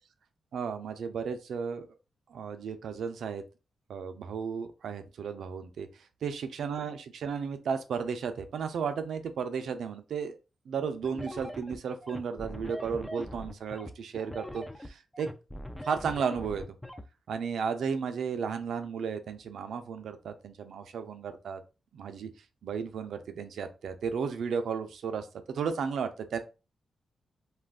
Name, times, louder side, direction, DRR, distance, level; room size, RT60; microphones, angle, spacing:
voice 1, 0.5-1.9 2.3-3.4 3.9-5.9 6.2-10.4 10.7-15.3 15.8-16.7 17.3-21.6 21.9-22.3 22.6-26.4, right 6 dB, 80° right, 9 dB, 0.4 m, -34 dB
sound 1, 11.0-17.0, equal, 5° left, 0.3 m, -41 dB
2.4 x 2.2 x 3.5 m, 0.30 s
cardioid pair, 90°, 0 cm